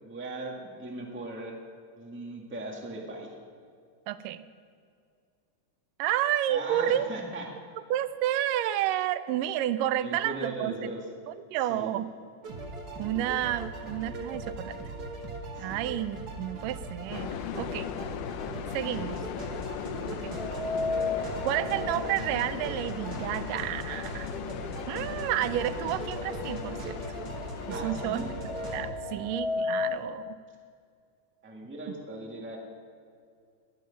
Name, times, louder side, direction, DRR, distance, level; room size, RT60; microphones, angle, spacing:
voice 1, 0.0-1.6 2.0-3.3 6.5-7.5 10.0-11.1 11.7-11.9 15.5-15.9 27.7-28.2 28.9-29.2 31.4-32.6, right 2 dB, 5° right, 0 dB, 1.0 m, -38 dB
voice 2, 4.1-4.4 6.0-7.1 7.9-10.9 11.3-12.1 13.0-14.8 15.6-17.9 18.7-19.2 20.1-20.4 21.2-24.3 24.9-27.0 27.7-28.4 28.7-30.4, right 12 dB, 85° right, 13 dB, 2.2 m, -30 dB
sound 1, 12.4-28.8, right 2 dB, 45° right, 1.4 m, -39 dB
sound 2, 17.1-28.9, left 10 dB, 85° left, 2.2 m, -38 dB
sound 3, 20.3-24.3 24.7-24.8 25.8-25.9 26.2-30.1, left 3 dB, 70° right, 1.2 m, -35 dB
21.0 x 9.4 x 5.2 m, 2.3 s
omnidirectional pair, 3.7 m